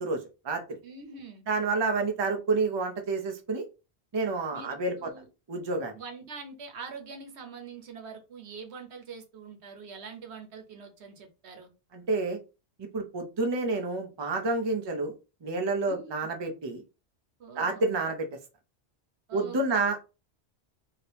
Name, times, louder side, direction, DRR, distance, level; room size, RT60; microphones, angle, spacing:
voice 1, 0.0-0.8 1.5-3.6 4.1-5.1 5.5-6.0 11.9-12.4 12.9-15.1 15.4-16.8 17.6-18.3 19.3-20.0, right 3 dB, 30° right, 4 dB, 0.5 m, -29 dB
voice 2, 0.8-1.4 4.5-5.3 5.9-11.7 15.9-16.1 17.4-17.8 19.3-19.6 19.8-19.9, right 5 dB, 80° right, 5 dB, 1.1 m, -44 dB
2.8 x 2.7 x 3.3 m, 0.30 s
omnidirectional pair, 1.1 m